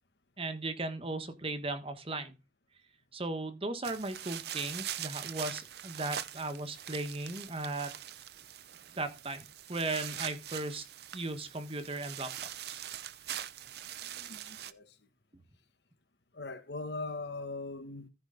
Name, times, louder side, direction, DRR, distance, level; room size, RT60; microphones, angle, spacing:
voice 1, 0.4-2.3 3.1-7.9 9.0-10.8 11.1-12.3 12.6-12.8, right 2 dB, 35° right, 1.4 m, -37 dB
sound 1, 3.8-14.7, right 11 dB, 65° right, 0.7 m, -43 dB
voice 2, 14.0-15.0 16.3-18.1, left 3 dB, 70° left, 1.5 m, -41 dB
14.5 x 5.0 x 3.9 m
head